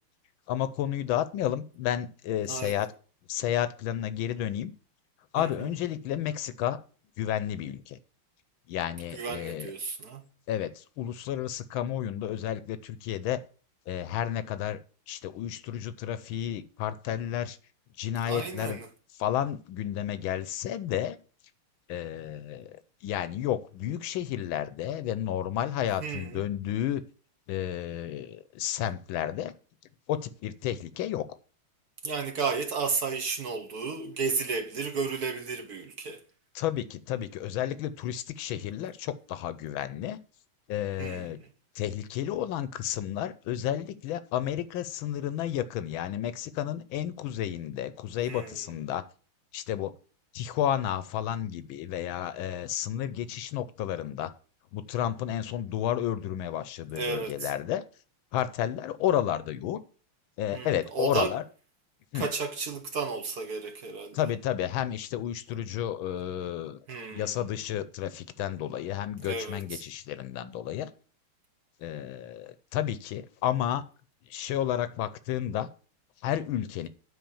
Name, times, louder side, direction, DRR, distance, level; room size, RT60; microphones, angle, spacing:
voice 1, 0.5-2.9 3.3-4.7 5.3-6.8 7.2-8.0 8.7-9.7 10.5-13.4 13.9-14.8 15.1-17.6 18.0-18.8 19.2-21.2 21.9-22.8 23.0-27.0 27.5-29.5 30.1-31.2 36.5-40.2 40.7-41.4 41.7-49.0 49.5-49.9 50.3-54.3 54.7-57.8 58.3-59.8 60.4-61.4 62.1-62.3 64.1-66.8 67.1-70.9 71.8-73.8 74.3-75.7 76.2-76.9, left 11 dB, 75° left, 1.4 m, -31 dB
voice 2, 2.5-2.8 5.4-5.7 9.1-10.3 18.2-18.9 26.0-26.4 32.0-36.2 41.0-41.5 48.3-48.6 56.9-57.5 60.5-61.4 62.1-64.2 66.9-67.4 69.2-69.8, right 4 dB, 55° right, 1.3 m, -33 dB
9.5 x 4.4 x 7.0 m
omnidirectional pair, 2.3 m